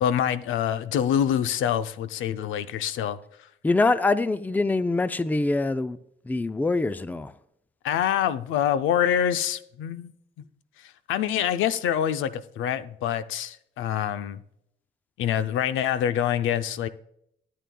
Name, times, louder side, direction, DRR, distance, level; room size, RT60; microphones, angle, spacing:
voice 1, 0.0-3.5 7.8-10.4 11.1-14.4 15.2-16.9, left 9 dB, 80° left, 0.5 m, -26 dB
voice 2, 3.6-6.0 6.3-7.3, left 3 dB, 10° left, 0.4 m, -24 dB
12.5 x 8.5 x 2.2 m
cardioid pair, 90°, 20 cm